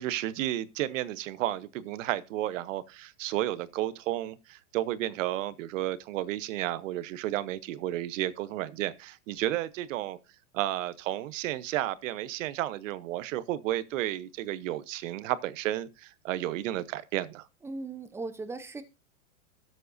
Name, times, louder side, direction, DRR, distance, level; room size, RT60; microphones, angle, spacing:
voice 1, 0.0-10.2 10.5-17.5, right 14 dB, 65° right, 1.0 m, -32 dB
voice 2, 17.6-18.8, right 3 dB, 5° right, 0.7 m, -38 dB
13.0 x 7.5 x 2.6 m
hypercardioid pair, 130°, 42 cm